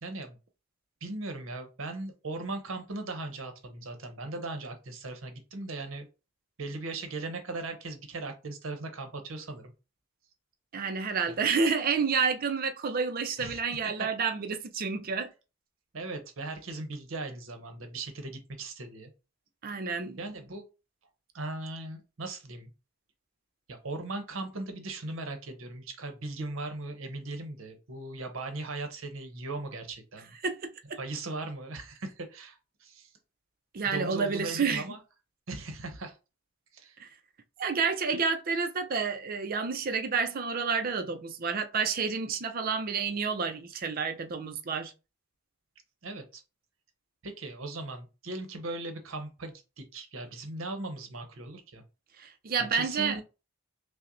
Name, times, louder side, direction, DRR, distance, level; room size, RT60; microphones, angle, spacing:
voice 1, 0.0-0.4 1.0-6.1 6.6-9.7 13.4-14.1 15.9-19.1 20.2-20.6 21.3-22.7 23.7-30.4 31.0-33.1 33.9-35.0 35.5-36.2 36.7-37.0 46.0-46.4 47.2-51.8 52.7-53.2, right 2 dB, 65° right, 0.8 m, -38 dB
voice 2, 10.7-15.3 19.6-20.2 30.4-30.7 33.7-34.8 37.0-37.1 37.6-44.9 52.2-53.2, right 5 dB, 45° right, 0.4 m, -29 dB
5.6 x 2.1 x 2.6 m
head